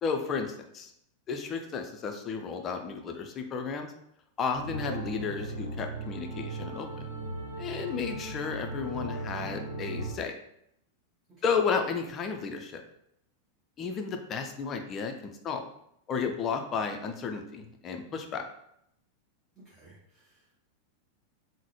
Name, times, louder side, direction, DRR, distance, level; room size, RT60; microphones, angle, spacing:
voice 1, 0.0-0.9 1.3-3.9 4.4-6.9 7.6-10.3 11.4-12.8 13.8-15.6 16.1-18.4, left 5 dB, 30° left, 5 dB, 0.4 m, -33 dB
sound 1, 4.5-10.2, right 2 dB, 85° left, 0.5 m, -37 dB
voice 2, 19.6-20.7, right 2 dB, 15° right, -8 dB, 0.9 m, -59 dB
3.7 x 2.1 x 3.1 m, 0.75 s
figure-of-eight pair, 90°, 0 cm